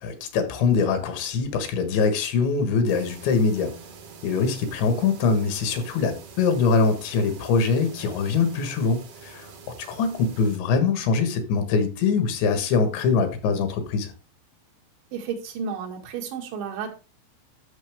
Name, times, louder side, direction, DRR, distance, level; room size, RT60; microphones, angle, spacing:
voice 1, 0.0-3.7 4.2-9.5 9.8-14.1, left 5 dB, 80° left, 3.8 m, -23 dB
sound 1, 2.9-10.6, right 5 dB, 70° right, 1.4 m, -45 dB
voice 2, 15.1-16.9, right 6 dB, 85° right, 4.3 m, -32 dB
12.5 x 6.5 x 3.5 m
omnidirectional pair, 5.1 m